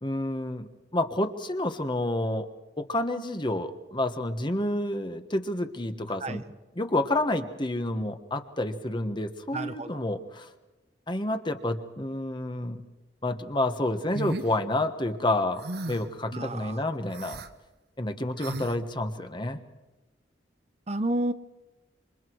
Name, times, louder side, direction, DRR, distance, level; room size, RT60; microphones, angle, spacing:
voice 1, 0.0-2.5 2.8-6.4 6.8-10.5 11.1-12.8 13.2-15.6 15.9-17.4 18.0-19.6, left 1 dB, 25° left, 8 dB, 1.4 m, -29 dB
voice 2, 9.5-10.0 16.3-16.8 20.9-21.3, right 1 dB, 35° right, 11 dB, 0.8 m, -30 dB
sound 1, 14.1-14.5 15.6-16.1 17.1-17.5 18.4-18.8, right 2 dB, 60° right, 1.2 m, -35 dB
27.5 x 26.0 x 4.7 m, 1.1 s
head